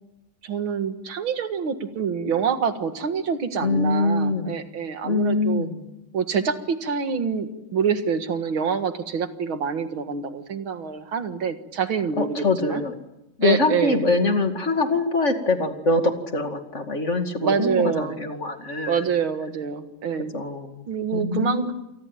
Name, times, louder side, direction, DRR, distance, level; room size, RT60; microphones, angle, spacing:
voice 1, 0.4-5.7 6.1-12.8 13.4-14.1 17.4-18.2 18.9-20.3 20.9-21.7, right 6 dB, 75° right, 8 dB, 2.5 m, -26 dB
voice 2, 3.6-4.6 5.0-5.8 12.2-12.9 13.4-19.0 20.3-20.8 21.1-21.7, left 2 dB, 35° left, 6 dB, 2.5 m, -23 dB
28.0 x 20.0 x 9.1 m, 0.92 s
omnidirectional pair, 2.3 m